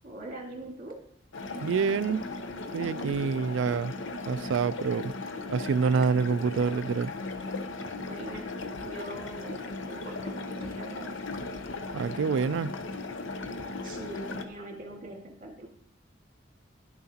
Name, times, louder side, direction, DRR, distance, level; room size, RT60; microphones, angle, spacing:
voice 1, 0.0-1.0 8.0-8.5 8.8-11.1 13.8-15.7, right 2 dB, 45° right, 1.9 m, -42 dB
sound 1, 1.3-14.4, left 3 dB, 70° left, 0.8 m, -37 dB
voice 2, 1.6-2.2 2.7-3.9 4.3-5.1 5.5-7.1 11.9-12.7, right 5 dB, 70° right, 0.3 m, -27 dB
10.5 x 9.5 x 2.8 m
head